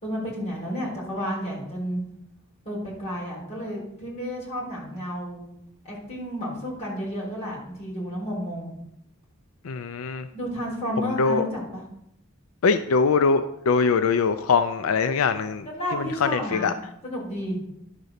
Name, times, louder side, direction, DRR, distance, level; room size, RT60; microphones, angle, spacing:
voice 1, 0.0-2.0 2.6-5.4 5.8-8.7 10.3-11.8 15.7-16.8 17.0-17.6, equal, 30° left, -4 dB, 3.9 m, -31 dB
voice 2, 9.6-10.3 11.2-11.4 12.6-15.7 15.9-16.7, left 5 dB, 90° left, 10 dB, 0.5 m, -22 dB
11.5 x 4.0 x 6.5 m, 0.77 s
head